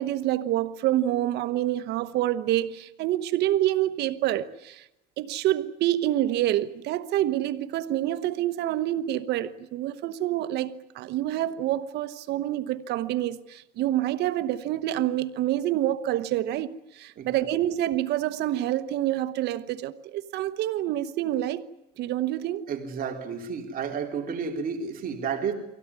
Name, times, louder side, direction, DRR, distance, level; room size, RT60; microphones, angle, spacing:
voice 1, 0.0-4.9 5.2-21.6 22.0-22.6, right 13 dB, 80° right, 1.1 m, -27 dB
voice 2, 17.2-17.5 22.7-25.5, right 6 dB, 55° right, 3.6 m, -31 dB
24.0 x 17.0 x 9.7 m
cardioid pair, 110°, 17 cm